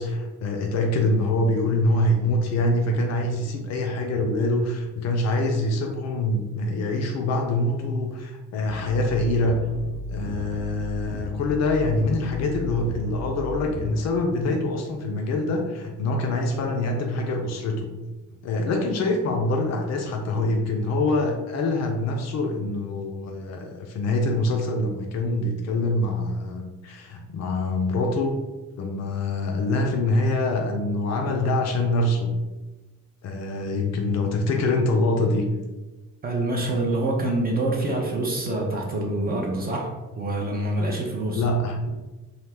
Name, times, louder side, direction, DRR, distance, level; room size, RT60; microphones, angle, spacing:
voice 1, 0.0-9.6 10.1-17.9 18.4-28.4 28.8-32.3 33.2-35.5 41.3-41.9, left 2 dB, 40° left, 2 dB, 0.4 m, -25 dB
sound 1, 8.7-14.0, left 1 dB, 75° left, 0.6 m, -35 dB
voice 2, 36.2-41.4, right 2 dB, 20° right, -1 dB, 0.4 m, -26 dB
2.4 x 2.0 x 3.2 m, 1.1 s
figure-of-eight pair, 40°, 45 cm